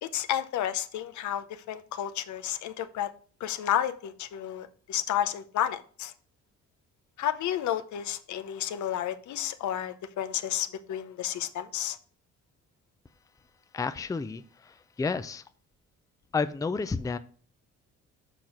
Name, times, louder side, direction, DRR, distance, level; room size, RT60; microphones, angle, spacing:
voice 1, 0.0-3.1 3.4-6.1 7.2-12.0, left 11 dB, 70° left, 0.7 m, -31 dB
voice 2, 13.7-15.4 16.3-17.2, left 4 dB, 10° left, 0.4 m, -31 dB
6.7 x 3.8 x 6.0 m
cardioid pair, 90°, 30 cm